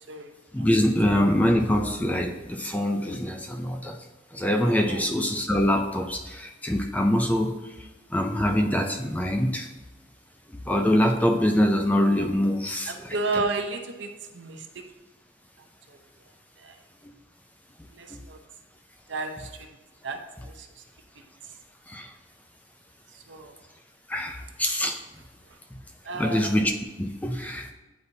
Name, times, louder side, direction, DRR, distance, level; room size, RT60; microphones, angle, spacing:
voice 1, 0.5-4.0 4.3-9.7 10.5-13.4 17.0-17.1 18.1-18.2 21.9-22.1 24.1-25.0 26.1-26.7 27.0-27.7, left 1 dB, 10° left, 4 dB, 0.4 m, -24 dB
voice 2, 12.9-14.6 15.9-16.0 16.6-16.8 17.9-18.4 19.1-19.5 20.0-20.2 20.5-20.7 23.3-23.5 26.0-26.6, right 3 dB, 65° right, 4 dB, 0.7 m, -32 dB
9.6 x 4.1 x 2.7 m, 1.2 s
head